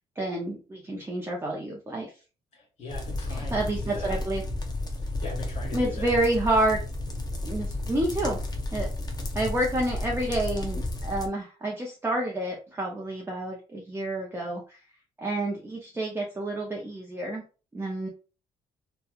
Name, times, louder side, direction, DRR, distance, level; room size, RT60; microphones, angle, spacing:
voice 1, 0.2-2.1 3.3-4.4 5.7-6.8 7.4-8.4 8.7-8.9 9.3-14.6 15.2-17.4 17.7-18.1, right 1 dB, 20° right, -2 dB, 0.6 m, -29 dB
voice 2, 2.5-4.2 5.0-6.2, left 2 dB, 55° left, 0 dB, 1.3 m, -41 dB
sound 1, 2.9-11.3, left 1 dB, 30° left, 0.7 m, -32 dB
2.8 x 2.2 x 2.4 m, 0.34 s
cardioid pair, 95°, 14 cm